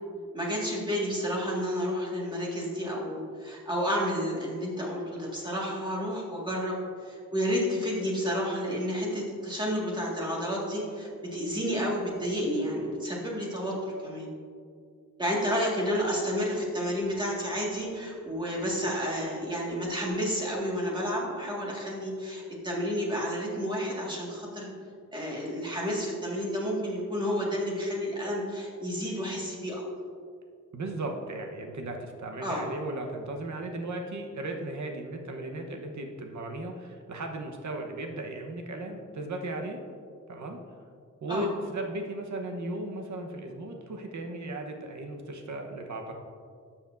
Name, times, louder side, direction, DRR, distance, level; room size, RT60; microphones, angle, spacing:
voice 1, 0.3-14.3 15.2-24.7 25.1-29.8 32.4-32.6 41.3-41.5, equal, 15° right, -4 dB, 1.8 m, -31 dB
voice 2, 30.7-39.8 40.3-40.6 41.2-46.1, right 2 dB, 70° right, 3 dB, 1.1 m, -36 dB
12.5 x 7.1 x 2.6 m, 2.2 s
wide cardioid pair, 140°, 31 cm